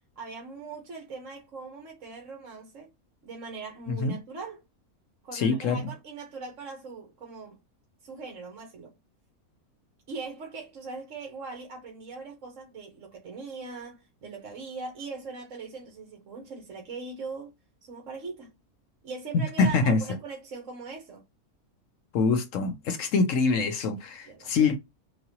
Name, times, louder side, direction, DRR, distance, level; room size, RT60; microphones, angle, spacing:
voice 1, 0.2-2.9 3.2-4.6 5.2-7.6 8.0-8.9 10.1-17.5 17.8-18.5 19.0-21.2 24.2-24.7, right 4 dB, 60° right, 1.4 m, -40 dB
voice 2, 3.9-4.2 5.3-5.8 19.3-20.0 22.1-24.8, left 4 dB, 65° left, 0.9 m, -25 dB
4.1 x 2.2 x 2.8 m
omnidirectional pair, 1.6 m